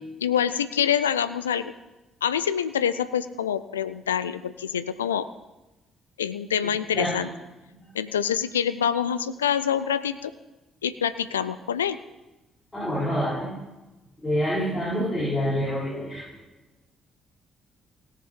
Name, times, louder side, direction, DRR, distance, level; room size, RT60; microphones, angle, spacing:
voice 1, 0.2-1.7 2.2-5.3 6.2-7.3 7.9-10.3 10.8-12.0, left 8 dB, 80° left, 13 dB, 0.3 m, -26 dB
voice 2, 12.7-13.5 14.2-16.2, equal, 15° left, -9 dB, 4.9 m, -26 dB
17.5 x 6.6 x 5.3 m, 1.1 s
figure-of-eight pair, 45°, 0 cm